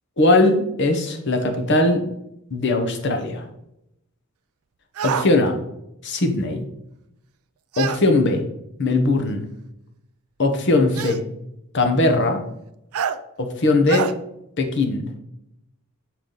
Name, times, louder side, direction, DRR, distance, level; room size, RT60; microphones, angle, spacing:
voice 1, 0.2-2.1 2.5-3.4 5.0-5.6 6.0-6.7 7.8-8.4 8.8-9.4 10.4-11.3 11.7-12.4 13.4-14.1 14.6-15.1, left 2 dB, 55° left, 5 dB, 0.9 m, -20 dB
sound 1, 5.0-5.3 7.7-8.0 9.3-9.4 10.9-11.2 12.9-13.2 13.9-14.1, right 8 dB, 80° right, 0.4 m, -26 dB
6.8 x 4.7 x 3.8 m, 0.83 s
head